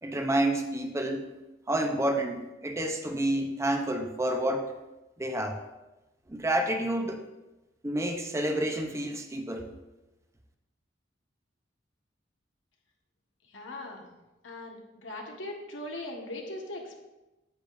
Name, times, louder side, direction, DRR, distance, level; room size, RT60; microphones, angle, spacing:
voice 1, 0.0-1.3 1.7-4.7 5.2-5.6 6.3-7.2 7.8-9.7, right 1 dB, 15° right, 4 dB, 0.8 m, -29 dB
voice 2, 13.5-14.1 14.4-17.0, left 1 dB, 85° left, 0 dB, 1.6 m, -40 dB
10.0 x 8.5 x 2.6 m, 1.0 s
head